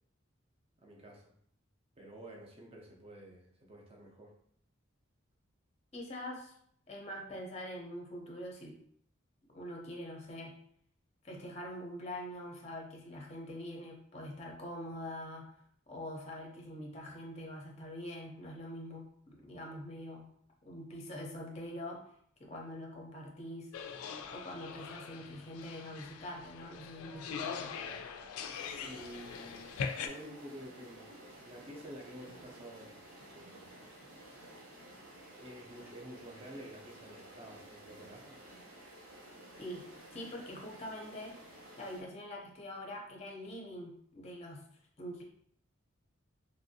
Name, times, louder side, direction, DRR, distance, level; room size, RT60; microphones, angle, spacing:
voice 1, 0.8-1.3 2.0-4.4 28.8-31.2 31.4-33.0 33.3-33.8 35.4-38.4, equal, 30° right, 0.5 m, -50 dB
voice 2, 5.9-6.5 6.9-8.8 9.5-10.6 11.2-15.5 15.9-20.3 20.6-22.0 22.4-23.7 24.3-27.7 39.6-39.9 40.1-44.7 45.0-45.2, left 1 dB, 30° left, 0.5 m, -44 dB
sound 1, 23.7-30.1, left 6 dB, 85° left, 0.3 m, -42 dB
sound 2, 28.5-42.0, right 1 dB, 75° right, 0.8 m, -53 dB
3.1 x 2.6 x 2.6 m
head